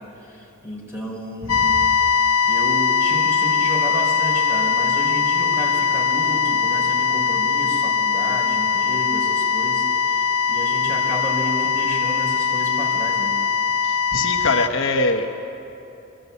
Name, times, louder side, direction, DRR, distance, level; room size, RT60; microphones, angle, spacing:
voice 1, 0.0-1.8 2.5-13.4, right 1 dB, 10° right, -3 dB, 4.1 m, -32 dB
sound 1, 1.5-14.7, left 6 dB, 80° left, 0.6 m, -21 dB
voice 2, 13.8-15.3, left 2 dB, 55° left, 4 dB, 1.1 m, -23 dB
22.5 x 15.5 x 8.3 m, 2.9 s
head